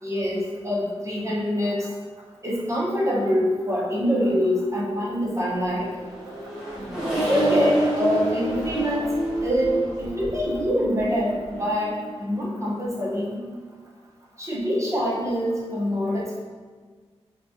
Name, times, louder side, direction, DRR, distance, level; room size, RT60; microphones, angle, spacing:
voice 1, 0.0-1.9 2.4-5.9 7.1-9.1 9.4-11.9 12.2-13.4 14.4-16.4, equal, 25° right, -6 dB, 1.1 m, -25 dB
Accelerating revving vroom, 5.5-12.2, right 1 dB, 5° right, 1.5 m, -28 dB
4.1 x 2.4 x 2.9 m, 1.5 s
cardioid pair, 55°, 11 cm